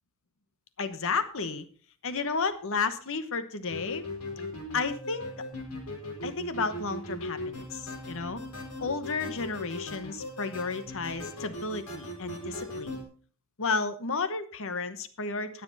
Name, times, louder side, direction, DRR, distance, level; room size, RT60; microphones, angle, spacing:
voice 1, 0.8-1.7 2.0-4.0 4.7-5.3 6.2-8.4 8.8-13.0 13.6-15.6, left 4 dB, 65° left, 12 dB, 1.1 m, -32 dB
sound 1, 3.7-13.0, left 1 dB, 90° left, 4.3 m, -38 dB
20.0 x 7.1 x 4.1 m, 0.41 s
head